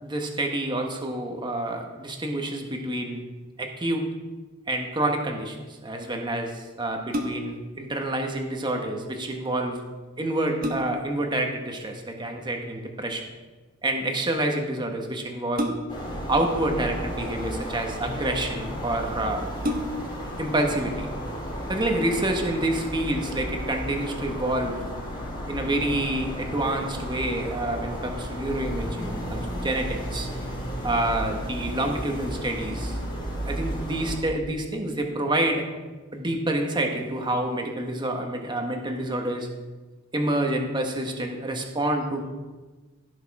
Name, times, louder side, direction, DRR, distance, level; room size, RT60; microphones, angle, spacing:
voice 1, 0.0-3.2 3.6-4.1 4.7-5.6 5.8-9.8 10.2-13.2 13.8-15.7 16.3-19.5 20.4-21.1 21.7-24.8 25.5-30.3 30.8-33.0 33.4-35.6 36.1-39.5 40.1-42.3, right 1 dB, 20° right, 3 dB, 1.3 m, -28 dB
sound 1, 7.1-7.7 9.7-9.8 10.3-11.2 12.7-13.1 15.6-16.2 17.1-17.8 18.6-18.7 19.0-19.1 19.6-20.2 20.7-20.8, left 1 dB, 40° right, 1.4 m, -31 dB
sound 2, 15.9-34.2, equal, 20° left, 2.9 m, -33 dB
16.0 x 6.5 x 4.8 m, 1.3 s
head